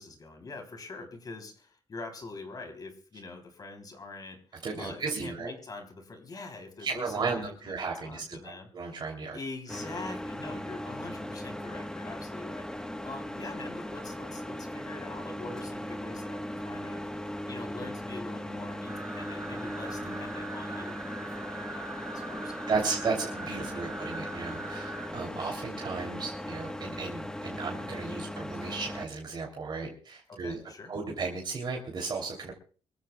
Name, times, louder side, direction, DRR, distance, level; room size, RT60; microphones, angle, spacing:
voice 1, 0.0-4.4 4.8-8.9 9.3-17.1 17.5-21.1 21.4-21.8 22.1-22.6 23.7-23.8 30.3-30.9, left 3 dB, 40° left, 5 dB, 3.5 m, -44 dB
voice 2, 4.6-5.5 6.8-9.4 11.6-11.7 20.0-20.2 22.7-30.6 30.9-32.5, right 4 dB, 50° right, 0 dB, 3.2 m, -34 dB
sound 1, 9.7-29.1, left 1 dB, 5° left, 1.3 m, -38 dB
sound 2, 18.9-25.1, right 3 dB, 25° right, 4.8 m, -42 dB
26.0 x 14.5 x 2.4 m, 0.40 s
cardioid pair, 125°, 10 cm